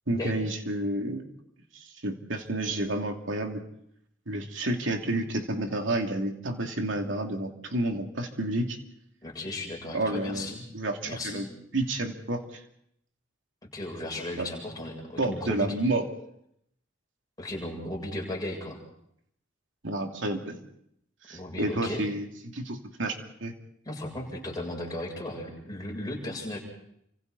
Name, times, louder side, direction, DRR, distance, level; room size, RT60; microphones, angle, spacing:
voice 1, 0.1-1.2 1.7-3.6 4.3-8.8 9.9-11.5 11.7-12.6 14.4-14.5 15.2-16.0 19.8-20.6 21.3-22.3 22.5-23.5, right 1 dB, 80° right, 3 dB, 2.8 m, -30 dB
voice 2, 9.2-10.6 11.0-11.5 13.6-15.8 17.4-18.8 21.3-22.0 23.8-26.6, left 1 dB, 20° left, -2 dB, 7.8 m, -36 dB
29.5 x 26.0 x 4.1 m, 0.72 s
head